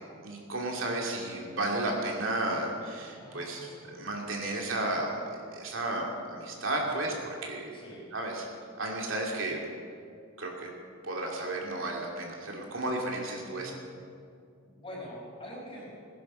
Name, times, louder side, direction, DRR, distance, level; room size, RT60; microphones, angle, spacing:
voice 1, 0.2-3.6 3.9-7.1 7.4-7.8 8.1-8.5 8.8-9.6 10.4-10.7 11.0-13.7, right 2 dB, 70° right, -1 dB, 2.7 m, -33 dB
voice 2, 3.2-4.1 6.8-7.2 7.7-8.1 13.4-13.8 14.6-16.0, equal, 25° left, -4 dB, 5.0 m, -45 dB
19.5 x 10.5 x 6.4 m, 2.3 s
head